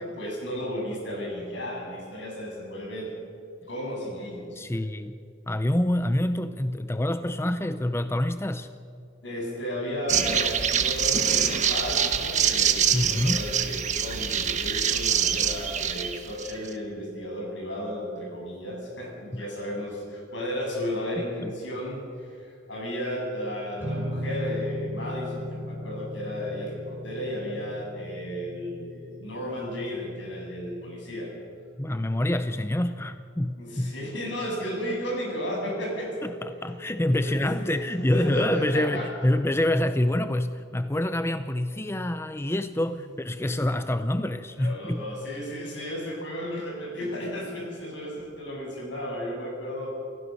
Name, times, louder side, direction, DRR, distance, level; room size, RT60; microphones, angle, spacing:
voice 1, 0.0-3.1 3.7-4.6 9.2-31.3 33.6-36.1 37.1-37.8 38.1-39.1 42.7-42.8 44.5-49.9, equal, 75° left, -1 dB, 7.9 m, -34 dB
voice 2, 4.6-5.1 5.5-8.7 12.9-13.4 19.3-19.5 21.4-21.5 31.8-33.9 36.2-45.1, left 1 dB, 15° left, 10 dB, 0.6 m, -26 dB
sound 1, 10.1-16.7, right 8 dB, 40° right, 1.3 m, -25 dB
sound 2, 23.8-31.4, left 1 dB, 10° right, 5.9 m, -37 dB
28.5 x 15.5 x 6.6 m, 2.4 s
head